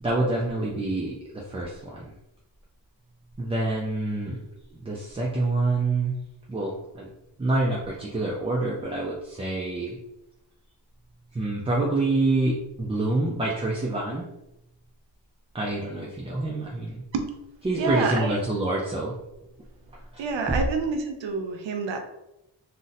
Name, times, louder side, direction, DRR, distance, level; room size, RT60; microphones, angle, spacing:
voice 1, 0.0-2.1 3.4-4.4 4.8-6.2 6.5-7.1 7.4-10.0 11.3-14.3 15.5-17.0 17.6-19.2 19.9-20.2 20.5-20.6, right 2 dB, 15° right, -3 dB, 0.3 m, -27 dB
voice 2, 17.8-18.4 20.2-22.0, right 4 dB, 90° right, 5 dB, 0.6 m, -27 dB
2.5 x 2.1 x 4.0 m, 0.89 s
wide cardioid pair, 115°, 43 cm